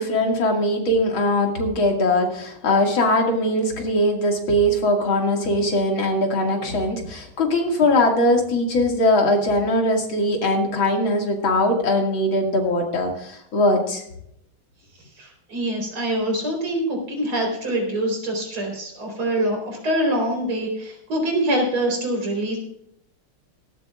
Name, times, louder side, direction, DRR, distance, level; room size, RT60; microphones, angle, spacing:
voice 1, 0.0-14.0, left 1 dB, 70° left, 2 dB, 2.9 m, -21 dB
voice 2, 15.2-22.6, right 1 dB, 85° right, 1 dB, 4.9 m, -24 dB
17.0 x 14.0 x 2.4 m, 0.74 s
omnidirectional pair, 2.3 m